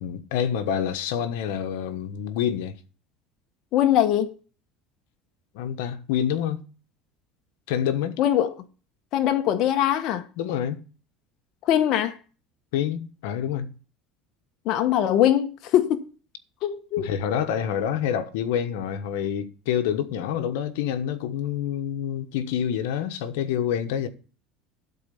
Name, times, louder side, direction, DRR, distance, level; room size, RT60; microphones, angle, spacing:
voice 1, 0.0-2.8 5.5-6.6 7.7-8.2 10.4-10.8 12.7-13.7 17.0-24.1, left 9 dB, 85° left, 1.2 m, -27 dB
voice 2, 3.7-4.4 8.2-8.5 9.1-10.3 11.6-12.2 14.6-16.0 16.6-17.1, left 11 dB, 55° left, 0.9 m, -22 dB
12.5 x 4.2 x 7.0 m
supercardioid pair, 125°, 0 cm